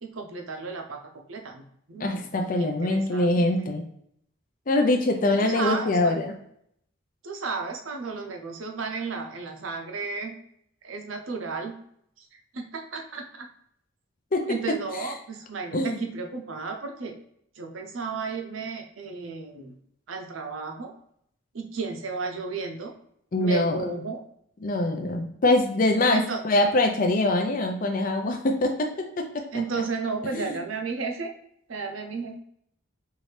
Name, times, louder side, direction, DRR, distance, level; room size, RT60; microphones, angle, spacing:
voice 1, 0.0-1.6 1.9-2.3 2.6-3.5 5.5-5.9 7.2-10.4 10.8-11.8 12.2-12.3 12.5-13.5 14.5-17.2 17.6-19.7 20.1-20.9 21.5-22.9 23.4-24.2 26.1-26.4 29.5-31.3 31.7-32.4, right 4 dB, 75° right, 3 dB, 0.7 m, -33 dB
voice 2, 2.0-3.8 4.7-6.3 14.3-15.1 15.7-16.0 23.3-23.9 24.6-29.4 29.7-29.8 30.3-30.6, left 2 dB, 40° left, 3 dB, 0.5 m, -24 dB
4.6 x 2.6 x 3.3 m, 0.71 s
head